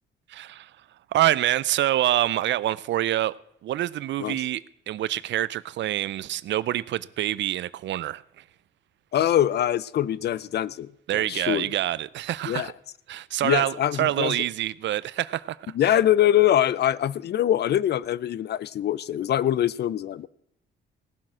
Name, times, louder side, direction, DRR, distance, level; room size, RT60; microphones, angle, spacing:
voice 1, 0.3-0.7 1.1-3.3 3.6-4.6 4.9-8.4 11.1-12.7 13.1-15.6 15.9-16.0, right 13 dB, 65° right, 0.5 m, -26 dB
voice 2, 9.1-11.7 12.5-12.7 13.4-14.4 15.7-20.3, left 11 dB, 55° left, 0.5 m, -23 dB
17.0 x 7.5 x 6.1 m
cardioid pair, 90°, 20 cm